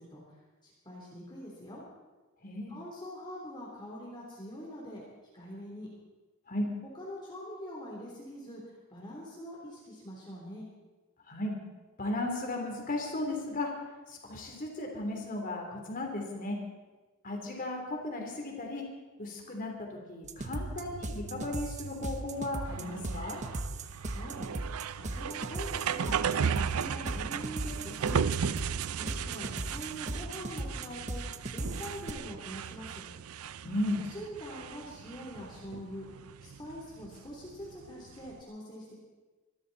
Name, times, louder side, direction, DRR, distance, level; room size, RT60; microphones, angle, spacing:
voice 1, 0.0-1.8 2.7-5.0 5.3-5.9 7.0-10.7 24.0-26.2 26.5-28.4 29.0-31.2 31.5-33.0 34.0-36.1 36.4-39.0, equal, 20° left, -4 dB, 3.4 m, -44 dB
voice 2, 2.4-2.8 6.5-6.7 11.3-11.6 12.0-13.7 14.1-16.6 17.2-18.8 19.2-23.4 33.6-34.0, left 2 dB, 40° left, 1 dB, 3.5 m, -35 dB
sound 1, 20.2-32.1, right 2 dB, 35° right, 1.0 m, -38 dB
sound 2, 20.4-38.4, right 7 dB, 90° right, 0.5 m, -36 dB
24.5 x 13.5 x 4.2 m, 1.2 s
head